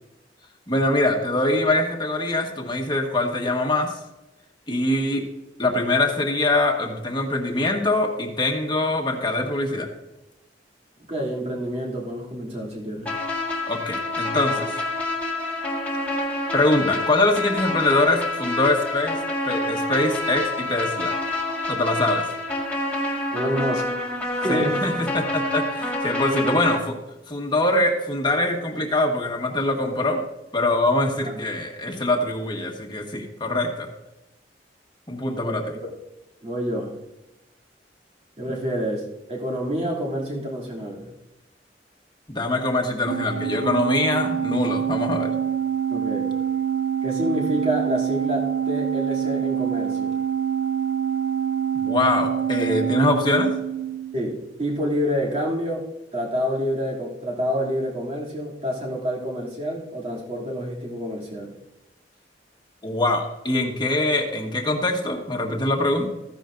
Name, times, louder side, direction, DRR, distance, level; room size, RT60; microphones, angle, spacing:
voice 1, 0.7-3.9 4.7-5.2 5.6-9.9 13.7-14.8 16.5-19.2 19.4-21.2 21.7-22.3 24.5-26.9 27.3-30.2 30.5-33.9 35.1-35.6 42.3-45.3 51.8-53.5 62.8-66.1, left 2 dB, 25° left, 2 dB, 1.4 m, -23 dB
voice 2, 11.1-13.1 23.3-23.9 24.3-24.8 26.4-26.6 31.2-31.4 35.4-36.0 36.4-37.0 38.4-41.1 45.9-46.3 47.0-50.1 54.1-61.5, equal, 35° right, -4 dB, 2.8 m, -28 dB
sound 1, 13.1-26.8, left 2 dB, 10° left, 1.8 m, -27 dB
Organ, 43.1-54.3, right 9 dB, 90° right, 0.3 m, -26 dB
14.5 x 10.0 x 2.6 m, 0.96 s
head